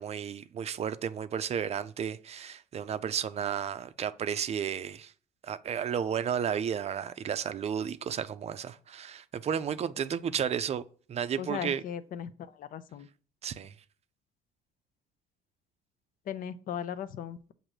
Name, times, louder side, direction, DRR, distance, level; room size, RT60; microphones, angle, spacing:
voice 1, 0.0-5.1 5.4-10.8 11.1-11.8 13.4-13.7, right 8 dB, 40° right, 0.5 m, -33 dB
voice 2, 11.4-13.1 16.3-17.5, left 9 dB, 55° left, 0.5 m, -37 dB
7.4 x 2.6 x 4.8 m
cardioid pair, 110°, 17 cm